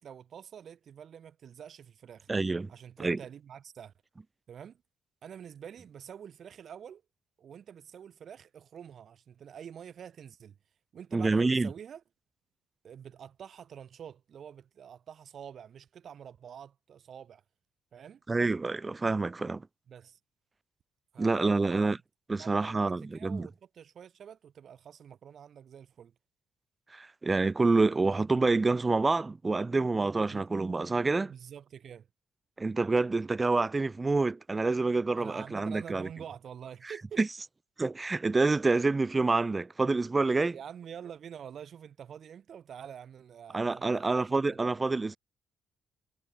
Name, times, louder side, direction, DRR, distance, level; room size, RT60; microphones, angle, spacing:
voice 1, 0.0-2.3 2.7-3.9 4.5-4.8 5.2-7.0 7.4-10.6 10.9-12.0 12.8-17.4 17.9-18.2 19.9-20.2 21.1-21.9 22.4-26.1 30.3-30.5 31.2-32.1 35.1-37.2 40.5-45.1, right 8 dB, 50° right, 5.9 m, -47 dB
voice 2, 2.3-2.7 3.0-3.2 11.1-11.7 18.3-19.7 21.2-22.0 22.3-23.5 26.9-31.3 32.6-36.1 37.2-37.3 37.8-40.6 43.5-45.2, right 3 dB, 20° right, 1.5 m, -27 dB
cardioid pair, 125°, 0 cm